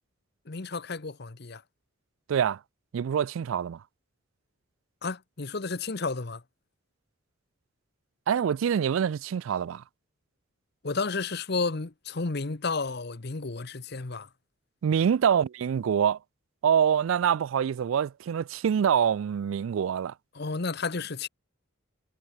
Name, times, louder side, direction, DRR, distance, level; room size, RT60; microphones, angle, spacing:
voice 1, 0.5-1.6 5.0-6.4 10.8-14.3 20.3-21.3, left 4 dB, 50° left, 0.9 m, -32 dB
voice 2, 2.3-2.6 2.9-3.8 8.3-9.8 14.8-16.2 16.6-20.1, right 8 dB, 70° right, 0.3 m, -25 dB
head